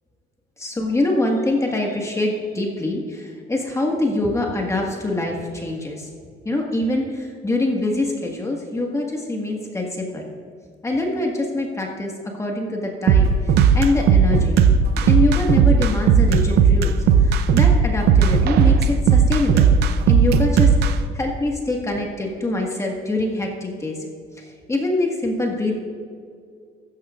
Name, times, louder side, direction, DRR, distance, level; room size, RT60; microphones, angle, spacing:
voice 1, 0.6-6.1 6.4-10.3 10.8-14.6 15.0-17.0 17.2-19.8 20.1-24.0 24.7-25.7, left 2 dB, 15° left, 0 dB, 1.6 m, -24 dB
sound 1, 13.1-20.9, right 6 dB, 75° right, 0.7 m, -15 dB
14.5 x 13.0 x 2.5 m, 2.2 s
cardioid pair, 110°, 17 cm